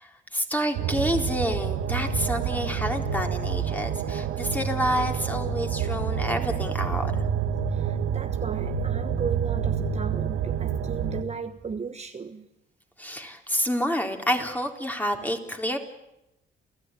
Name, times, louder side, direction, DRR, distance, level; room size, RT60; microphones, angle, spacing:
voice 1, 0.0-7.1 13.0-15.8, equal, 10° left, 4 dB, 3.9 m, -28 dB
sound 1, 0.7-11.2, right 7 dB, 90° right, 1.8 m, -28 dB
voice 2, 7.7-12.5, right 6 dB, 35° right, 7 dB, 1.3 m, -35 dB
29.0 x 15.0 x 9.9 m, 0.88 s
cardioid pair, 90°, 20 cm